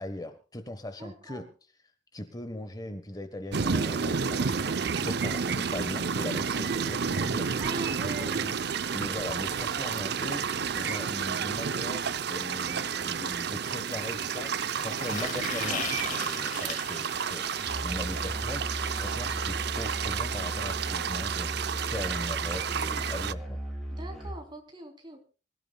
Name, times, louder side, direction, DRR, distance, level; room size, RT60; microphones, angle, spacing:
voice 1, 0.0-1.4 2.1-4.6 5.0-7.5 8.1-8.6 8.9-18.6 18.9-23.6, left 1 dB, 20° left, 8 dB, 1.3 m, -39 dB
voice 2, 1.0-1.5 5.0-5.1 7.6-8.5 16.5-16.7 23.9-25.2, right 2 dB, 25° right, 3 dB, 3.7 m, -42 dB
sound 1, 3.5-23.3, right 6 dB, 65° right, 0.7 m, -31 dB
sound 2, 13.9-17.7 19.6-19.7 20.0-20.1 20.4-20.5 21.4-21.5, left 6 dB, 45° left, 2.3 m, -39 dB
Musical instrument, 17.6-24.5, right 1 dB, ahead, 4.3 m, -37 dB
25.5 x 15.0 x 2.3 m, 0.35 s
head